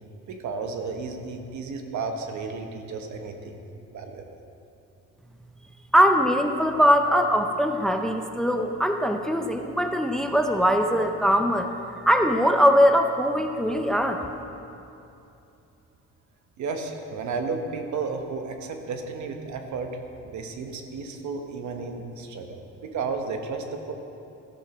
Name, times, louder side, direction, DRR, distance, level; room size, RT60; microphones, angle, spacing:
voice 1, 0.3-3.6 3.9-4.3 16.6-19.9 20.2-23.9, right 4 dB, 70° right, 4 dB, 1.2 m, -33 dB
voice 2, 5.9-11.7 12.0-14.2, equal, ahead, 5 dB, 0.7 m, -21 dB
14.0 x 6.5 x 6.2 m, 2.8 s
cardioid pair, 90°, 30 cm